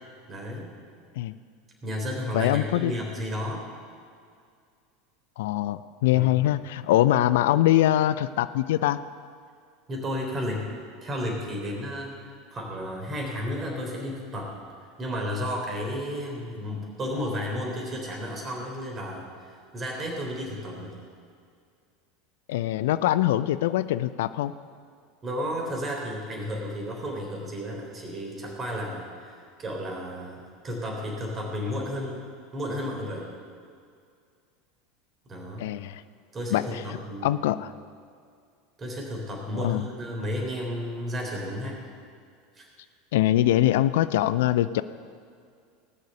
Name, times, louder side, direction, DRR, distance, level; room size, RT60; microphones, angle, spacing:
voice 1, 0.3-0.7 1.8-3.7 6.1-6.3 9.9-10.7 11.0-14.6 15.0-21.0 25.2-32.2 32.5-33.3 35.3-35.7 36.3-37.5 38.8-41.9 42.6-42.7, equal, 30° right, 0 dB, 3.7 m, -33 dB
voice 2, 2.3-2.9 5.4-9.0 22.5-24.5 35.6-36.0 36.5-36.8 37.2-37.7 39.5-39.8 43.1-44.8, left 14 dB, 65° left, 15 dB, 0.3 m, -23 dB
19.5 x 6.5 x 6.9 m, 2.2 s
figure-of-eight pair, 80°, 0 cm